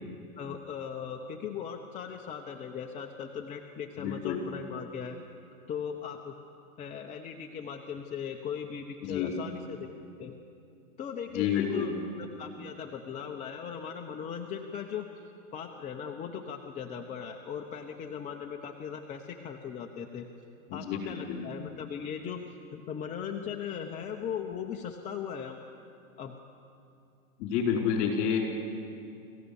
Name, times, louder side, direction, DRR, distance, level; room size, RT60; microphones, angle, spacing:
voice 1, 0.4-5.2 5.7-6.3 6.8-9.9 10.2-10.4 11.0-20.3 20.7-22.4 22.7-25.6 26.2-26.3, left 7 dB, 15° left, 2 dB, 0.8 m, -38 dB
voice 2, 4.0-4.4 9.0-9.3 11.3-11.9 20.7-21.5 27.4-28.4, left 8 dB, 40° left, 1 dB, 4.8 m, -29 dB
26.5 x 15.5 x 7.0 m, 2.6 s
hypercardioid pair, 135°, 43 cm